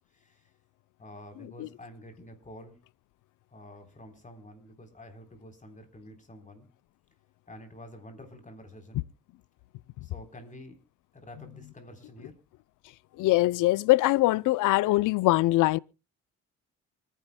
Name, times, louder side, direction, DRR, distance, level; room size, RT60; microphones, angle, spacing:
voice 1, 0.1-0.5 1.0-2.8 3.5-6.7 7.5-9.1 10.0-10.8 11.1-12.4, left 1 dB, 25° left, 3.8 m, -48 dB
voice 2, 13.2-15.8, left 18 dB, 85° left, 0.5 m, -22 dB
28.0 x 10.5 x 2.2 m
cardioid pair, 90°, 30 cm